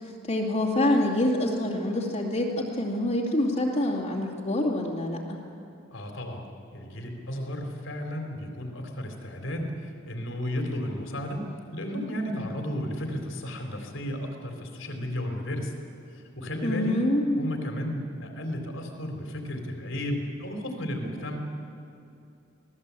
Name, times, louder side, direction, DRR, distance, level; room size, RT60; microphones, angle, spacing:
voice 1, 0.3-2.5 2.8-5.4 16.6-17.5, left 1 dB, 35° left, -3 dB, 2.5 m, -26 dB
voice 2, 5.9-6.4 6.7-11.5 11.7-15.7 16.1-17.0 17.4-21.4, equal, 70° left, 3 dB, 3.8 m, -33 dB
26.5 x 18.5 x 8.4 m, 2.7 s
head